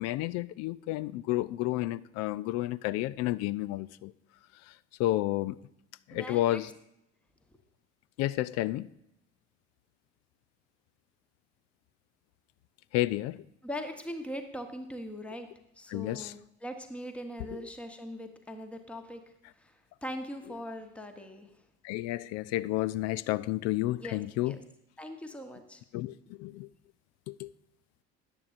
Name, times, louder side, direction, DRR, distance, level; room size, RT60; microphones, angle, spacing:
voice 1, 0.0-4.1 4.7-4.8 5.0-5.6 6.1-6.7 8.2-8.9 12.9-13.4 15.9-16.3 17.6-17.7 21.8-24.6 25.9-26.7 27.3-27.5, left 16 dB, 50° left, 0.4 m, -31 dB
voice 2, 6.1-6.6 13.6-15.5 15.8-19.2 19.5-21.5 24.0-24.6 25.0-25.8, equal, 5° left, 1.0 m, -41 dB
13.5 x 9.7 x 2.5 m
figure-of-eight pair, 60°, 34 cm